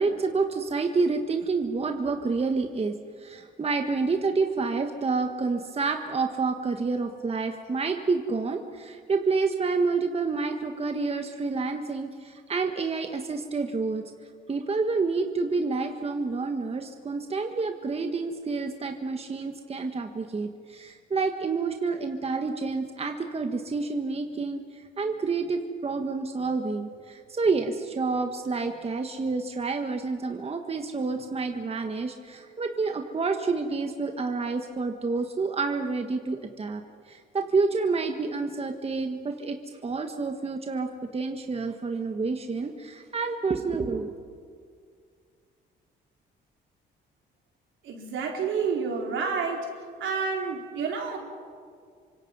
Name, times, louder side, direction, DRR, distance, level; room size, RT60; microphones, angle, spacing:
voice 1, 0.0-14.0 14.5-36.8 37.1-39.6 39.8-44.1, right 4 dB, 30° right, 5 dB, 1.4 m, -28 dB
voice 2, 47.8-49.7 50.0-51.2, right 5 dB, 75° right, 0 dB, 4.3 m, -29 dB
28.0 x 25.0 x 5.5 m, 2.2 s
cardioid pair, 90°, 20 cm